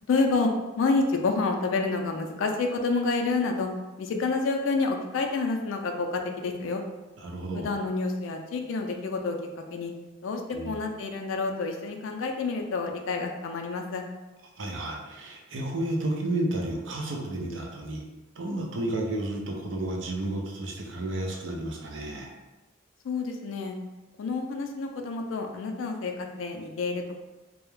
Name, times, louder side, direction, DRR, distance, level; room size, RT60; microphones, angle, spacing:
voice 1, 0.1-0.5 0.8-3.7 4.0-6.8 7.5-9.9 10.2-14.0 23.0-23.8 24.2-27.2, left 3 dB, 80° left, 4 dB, 0.3 m, -28 dB
voice 2, 7.2-7.7 10.5-10.7 14.6-18.0 18.4-22.3, right 1 dB, 70° right, 0 dB, 0.5 m, -32 dB
2.2 x 2.0 x 3.0 m, 1.1 s
head